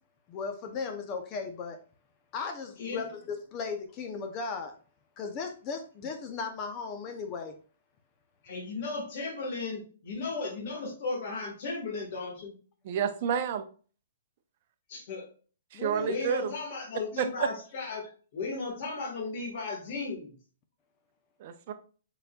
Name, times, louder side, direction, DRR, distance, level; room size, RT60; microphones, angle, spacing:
voice 1, 0.3-1.8 2.3-4.7 5.2-7.5 15.7-16.2, left 5 dB, 30° left, 5 dB, 0.7 m, -36 dB
voice 2, 8.4-12.5 14.9-15.3 15.9-20.3, left 4 dB, 50° left, -3 dB, 1.5 m, -35 dB
voice 3, 12.8-13.6 15.7-16.5 17.2-17.5 21.4-21.7, right 8 dB, 45° right, 8 dB, 0.6 m, -29 dB
5.4 x 4.0 x 2.3 m, 0.39 s
hypercardioid pair, 155°, 0 cm